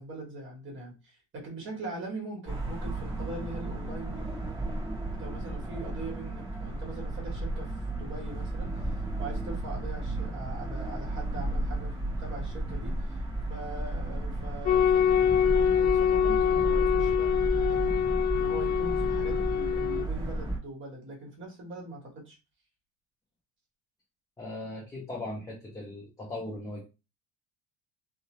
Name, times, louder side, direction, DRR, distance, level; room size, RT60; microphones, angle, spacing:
voice 1, 0.0-4.3 5.2-8.8 9.2-13.2 13.5-22.4, right 2 dB, 30° right, 1 dB, 1.2 m, -42 dB
sound 1, 2.5-20.6, right 1 dB, 10° right, 1.0 m, -33 dB
sound 2, 14.7-20.0, left 8 dB, 75° left, 0.6 m, -25 dB
voice 2, 24.4-26.8, left 2 dB, 10° left, -5 dB, 0.4 m, -38 dB
2.6 x 2.0 x 2.9 m, 0.28 s
cardioid pair, 160°, 39 cm